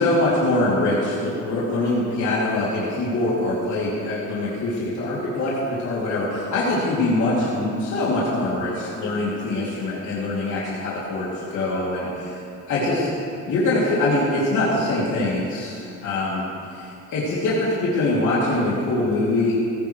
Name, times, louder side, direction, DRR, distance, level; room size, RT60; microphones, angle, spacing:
voice 1, 0.0-12.4 12.7-13.1 13.4-16.4 16.7-19.6, left 2 dB, 75° left, -8 dB, 2.9 m, -23 dB
16.0 x 15.0 x 3.3 m, 2.5 s
cardioid pair, 90°, 30 cm